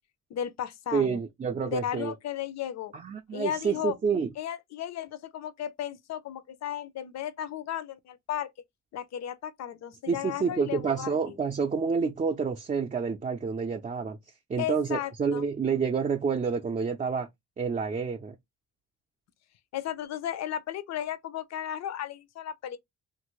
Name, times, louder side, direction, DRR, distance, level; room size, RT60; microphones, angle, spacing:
voice 1, 0.3-1.2 1.7-2.9 3.3-4.0 4.4-8.5 8.9-11.4 14.6-15.4 19.7-22.8, left 10 dB, 60° left, 0.6 m, -35 dB
voice 2, 0.9-2.1 2.9-4.3 10.1-14.2 14.5-17.3 17.6-18.4, right 5 dB, 25° right, 0.5 m, -28 dB
2.8 x 2.6 x 3.1 m
cardioid pair, 90°, 30 cm